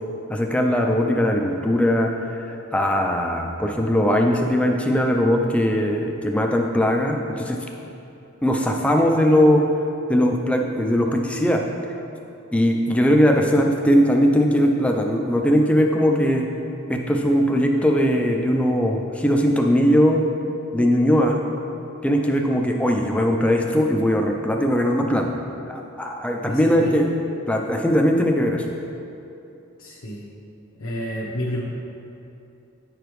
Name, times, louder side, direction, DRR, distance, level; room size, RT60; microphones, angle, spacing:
voice 1, 0.3-2.1 2.7-7.6 8.4-9.6 10.1-11.6 12.5-16.4 16.9-20.2 20.7-21.4 22.0-25.3 25.7-27.1 27.5-28.7, equal, 5° left, 2 dB, 0.4 m, -20 dB
voice 2, 26.4-26.9 29.8-30.2 30.8-31.6, equal, 75° left, -5 dB, 0.8 m, -30 dB
9.4 x 4.9 x 3.1 m, 2.8 s
head